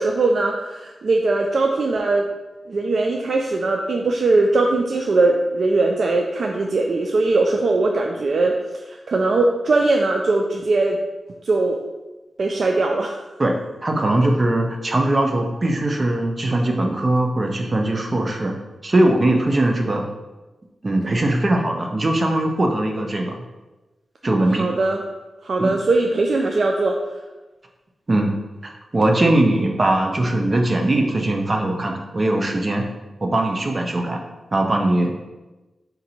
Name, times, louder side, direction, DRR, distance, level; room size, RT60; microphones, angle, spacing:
voice 1, 0.0-2.3 2.7-8.6 8.9-11.0 11.4-11.8 12.4-13.2 24.6-25.0 25.4-27.0, right 3 dB, 65° right, 2 dB, 0.3 m, -20 dB
voice 2, 13.8-18.5 18.8-20.0 20.8-23.3 24.2-24.7 25.6-25.8 28.1-28.3 28.6-32.8 33.2-34.2 34.5-35.3, right 1 dB, 45° right, 2 dB, 0.7 m, -20 dB
3.9 x 2.6 x 4.2 m, 1.1 s
cardioid pair, 50°, 0 cm